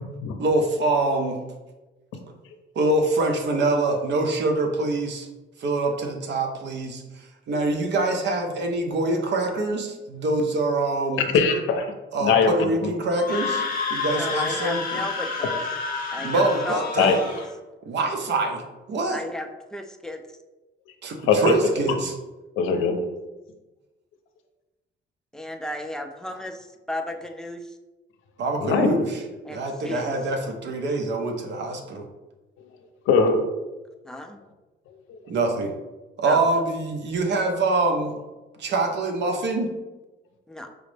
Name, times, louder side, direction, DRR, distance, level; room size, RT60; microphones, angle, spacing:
voice 1, 0.4-1.4 2.8-5.3 5.6-11.3 12.1-13.6 13.9-15.0 16.2-17.2 17.8-18.6 18.9-19.2 21.0-22.1 28.4-29.2 29.5-32.0 35.3-35.7 36.2-38.2 38.6-39.7, right 2 dB, 60° right, 4 dB, 0.7 m, -25 dB
voice 2, 11.3-11.9 12.2-12.9 17.0-17.1 21.3-21.8 22.6-23.0 28.6-28.9 33.1-33.4 35.1-35.2, left 5 dB, 85° left, 5 dB, 0.5 m, -21 dB
Screaming, 13.1-17.5, left 5 dB, 50° left, 0.8 m, -29 dB
voice 3, 14.1-15.6 16.1-17.4 19.1-20.4 25.3-27.8 29.4-30.1 34.0-34.4 36.2-36.4 40.5-40.7, left 1 dB, 5° left, 5 dB, 0.3 m, -35 dB
4.8 x 2.0 x 3.2 m, 1.1 s
cardioid pair, 90°, 20 cm